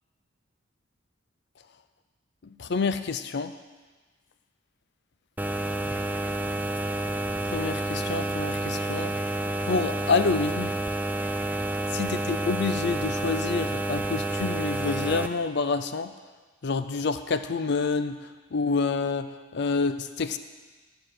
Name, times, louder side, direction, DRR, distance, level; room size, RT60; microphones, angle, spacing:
voice 1, 2.6-3.5 7.5-9.1 9.7-10.7 11.9-16.1 16.6-18.2 18.5-20.4, left 4 dB, 55° left, 11 dB, 0.5 m, -28 dB
sound 1, 5.4-15.3, right 1 dB, 10° right, 0.4 m, -29 dB
13.0 x 4.8 x 7.6 m, 1.4 s
head